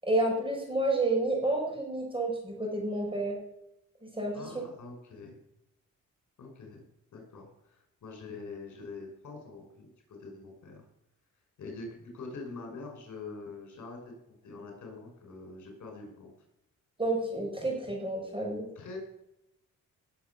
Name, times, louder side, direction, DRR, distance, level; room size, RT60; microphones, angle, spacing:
voice 1, 0.0-3.4 4.1-4.6 17.0-18.7, right 2 dB, 15° right, 0 dB, 6.4 m, -30 dB
voice 2, 4.3-5.4 6.4-6.8 7.1-10.8 11.6-14.0 14.3-16.3 18.7-19.0, left 3 dB, 65° left, 1 dB, 5.9 m, -44 dB
19.0 x 8.0 x 7.1 m, 0.86 s
cardioid pair, 100°, 31 cm